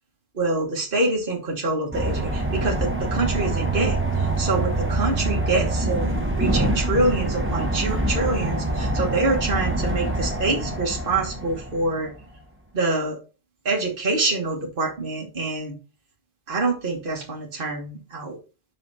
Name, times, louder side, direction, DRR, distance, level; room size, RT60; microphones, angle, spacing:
voice 1, 0.3-12.1 12.7-13.2 13.6-15.7 16.5-18.4, right 2 dB, 55° right, -1 dB, 1.7 m, -26 dB
sound 1, 1.9-12.1, right 2 dB, 10° right, 1.5 m, -25 dB
5.8 x 5.5 x 4.1 m, 0.33 s
omnidirectional pair, 1.1 m